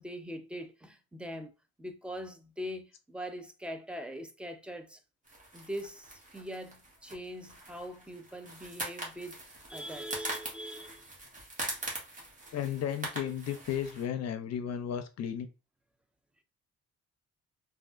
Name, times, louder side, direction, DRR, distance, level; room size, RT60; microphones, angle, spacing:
voice 1, 0.0-1.5 1.8-5.0 5.5-11.1, equal, 5° right, 0.4 m, -42 dB
sound 1, 5.2-14.1, right 1 dB, 25° right, 1.2 m, -42 dB
voice 2, 12.5-15.5, left 9 dB, 60° left, 0.5 m, -34 dB
3.4 x 2.4 x 2.4 m
cardioid pair, 90°, 30 cm